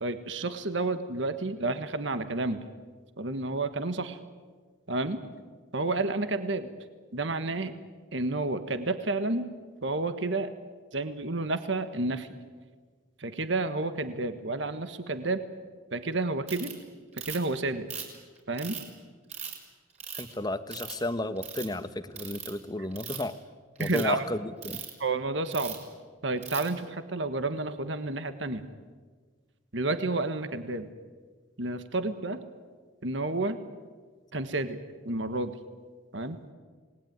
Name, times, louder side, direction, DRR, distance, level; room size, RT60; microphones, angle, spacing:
voice 1, 0.0-2.7 3.2-4.2 4.9-5.2 5.7-6.7 7.1-7.8 8.1-9.5 9.8-10.5 10.9-12.3 13.2-15.4 15.9-16.8 17.1-17.9 18.5-18.8 23.8-24.3 25.0-25.8 26.2-28.6 29.7-30.9 31.6-32.4 33.0-33.6 34.3-34.8 35.0-35.6 36.1-36.4, right 2 dB, 60° right, 10 dB, 1.4 m, -30 dB
Ratchet pawl, 16.5-16.7 17.2-17.5 17.9-18.8 19.3-19.6 20.0-20.3 20.7-21.1 21.4-21.7 22.2-22.5 22.9-23.3 23.8-24.0 24.6-24.9 25.5-25.8 26.4-26.7, right 7 dB, 35° right, 5.1 m, -38 dB
voice 2, 20.1-23.3 23.8-24.4 24.6-24.8, left 1 dB, 20° left, 11 dB, 1.1 m, -33 dB
28.0 x 20.0 x 9.5 m, 1.5 s
head